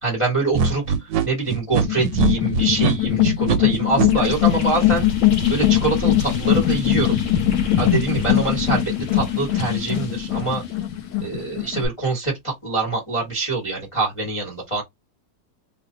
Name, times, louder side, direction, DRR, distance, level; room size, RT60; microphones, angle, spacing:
voice 1, 0.0-5.1 5.5-7.2 7.8-10.6 11.2-14.8, right 3 dB, 20° left, 0.9 m, -25 dB
sound 1, 0.5-4.1, right 6 dB, 75° right, 1.2 m, -22 dB
sound 2, 1.8-11.9, left 12 dB, 85° left, 1.4 m, -21 dB
sound 3, 4.1-11.1, left 1 dB, 55° left, 1.3 m, -34 dB
3.1 x 2.2 x 3.7 m
omnidirectional pair, 2.1 m